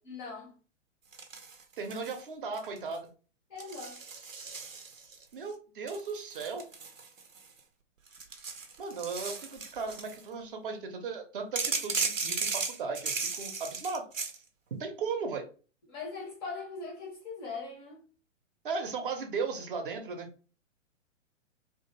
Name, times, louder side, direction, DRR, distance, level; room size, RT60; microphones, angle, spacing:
voice 1, 0.0-0.5 3.5-4.0 15.9-18.0, left 4 dB, 20° left, 0.5 m, -41 dB
sound 1, 1.1-2.2 2.5-3.0 3.6-5.2 5.9-7.6 8.1-10.2 11.6-14.4, right 4 dB, 80° right, 0.6 m, -36 dB
voice 2, 1.8-3.1 5.3-6.6 8.8-14.0 14.7-15.4 18.6-20.3, right 4 dB, 45° right, 0.6 m, -36 dB
2.6 x 2.3 x 2.7 m
figure-of-eight pair, 110°, 38 cm